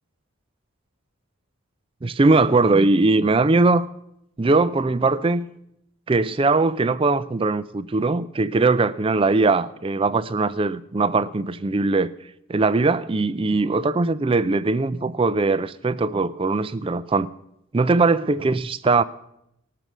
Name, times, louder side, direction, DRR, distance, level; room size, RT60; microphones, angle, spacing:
voice 1, 2.0-3.9 4.4-5.5 6.1-12.1 12.5-17.3 17.7-19.0, right 3 dB, 25° right, 0.4 m, -20 dB
19.5 x 6.8 x 6.1 m
head